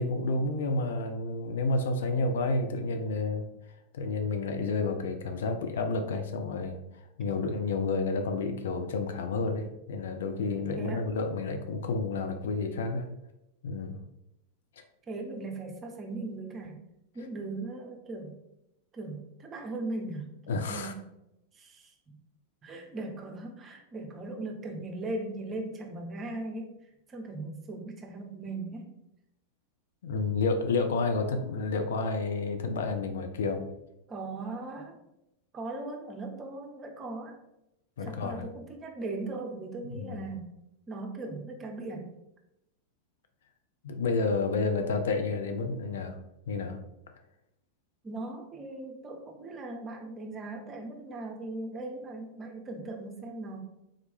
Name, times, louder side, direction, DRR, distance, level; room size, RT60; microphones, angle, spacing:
voice 1, 0.0-3.5 3.9-6.8 7.2-13.0 13.6-14.0 14.8-14.9 20.5-20.9 30.0-33.6 38.0-38.5 39.9-40.2 43.8-46.2 46.5-46.8, left 3 dB, 60° left, 6 dB, 0.4 m, -30 dB
voice 2, 15.1-16.9 17.1-18.4 18.9-21.1 21.5-22.2 22.6-26.8 27.1-29.0 34.1-35.0 35.5-37.4 38.0-40.5 40.9-42.1 48.0-53.6, right 2 dB, 25° right, 3 dB, 0.7 m, -39 dB
3.7 x 3.1 x 3.4 m, 0.87 s
figure-of-eight pair, 90°, 0 cm